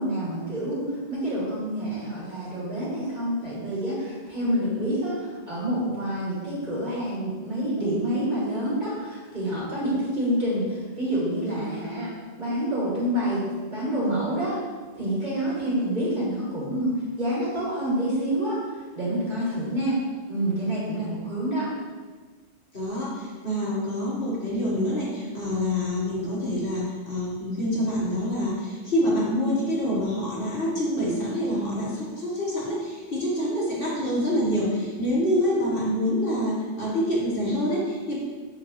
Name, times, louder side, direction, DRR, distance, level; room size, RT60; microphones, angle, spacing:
voice 1, 0.0-14.6 14.9-20.0 20.3-21.7, right 1 dB, 40° right, -8 dB, 2.6 m, -27 dB
voice 2, 22.7-38.2, equal, 50° left, -6 dB, 1.9 m, -26 dB
7.4 x 6.2 x 3.2 m, 1.4 s
omnidirectional pair, 1.2 m